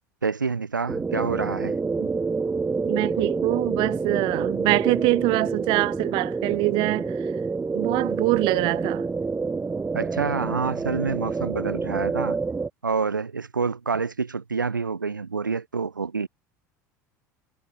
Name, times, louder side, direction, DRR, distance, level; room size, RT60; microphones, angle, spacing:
voice 1, 0.2-1.8 9.9-12.4 12.8-16.3, right 5 dB, 85° right, 0.9 m, -27 dB
sound 1, 0.9-12.7, right 4 dB, 15° right, 1.2 m, -28 dB
voice 2, 2.8-7.1 7.7-9.0, right 23 dB, 50° right, 1.0 m, -24 dB
figure-of-eight pair, 70°, 10 cm